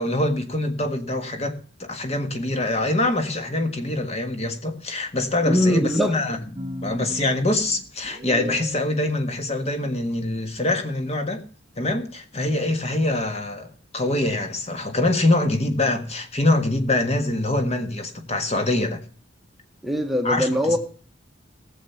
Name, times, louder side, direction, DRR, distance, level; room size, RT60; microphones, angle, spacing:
voice 1, 0.0-6.4 6.8-11.4 11.8-19.0 20.2-20.8, left 2 dB, 30° left, 1.5 m, -24 dB
voice 2, 5.5-6.2 19.8-20.8, equal, ahead, 1.1 m, -21 dB
sound 1, 6.6-8.8, equal, 25° right, 0.8 m, -35 dB
16.5 x 7.4 x 5.6 m
head